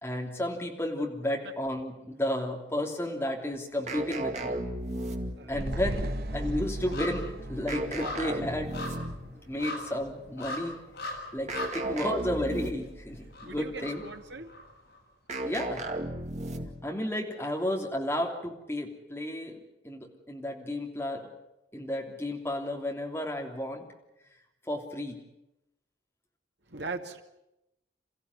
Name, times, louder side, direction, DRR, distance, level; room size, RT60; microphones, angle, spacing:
voice 1, 0.0-4.6 5.5-8.8 9.5-10.8 11.3-14.0 15.4-15.8 16.8-21.3 21.7-23.8 24.7-25.2, left 1 dB, 15° left, 1 dB, 3.2 m, -32 dB
sound 1, 3.9-5.6 7.7-9.3 11.5-13.0 15.3-16.9, right 1 dB, 40° right, 2.2 m, -34 dB
sound 2, 4.1-4.7 5.0-15.0 15.3-15.4, left 2 dB, 65° left, 6.5 m, -42 dB
voice 2, 5.4-6.0 13.4-14.5 26.7-27.2, right 3 dB, 75° right, 5 dB, 2.3 m, -40 dB
sound 3, 5.5-10.0 10.4-10.5, equal, 55° right, 1.4 m, -36 dB
28.5 x 15.0 x 9.8 m, 0.90 s
head